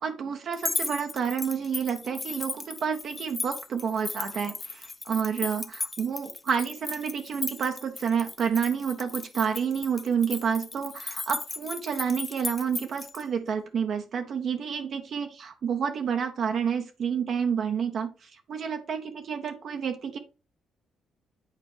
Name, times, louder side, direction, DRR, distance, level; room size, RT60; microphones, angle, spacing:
voice 1, 0.0-20.2, right 7 dB, 60° right, 6 dB, 0.7 m, -29 dB
sound 1, 0.5-13.2, left 3 dB, 25° left, 0.5 m, -36 dB
8.9 x 4.2 x 3.2 m, 0.34 s
cardioid pair, 90°, 0 cm